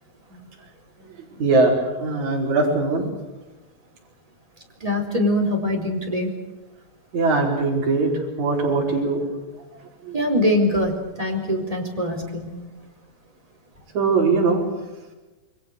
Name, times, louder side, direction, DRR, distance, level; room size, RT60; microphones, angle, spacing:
voice 1, 1.3-3.1 7.1-8.1 8.4-9.6 10.0-10.2 13.9-14.6, right 3 dB, 55° right, -1 dB, 6.0 m, -21 dB
voice 2, 4.8-6.3 10.1-12.5, left 1 dB, 10° right, 2 dB, 4.3 m, -23 dB
29.0 x 22.5 x 6.7 m, 1.1 s
omnidirectional pair, 4.0 m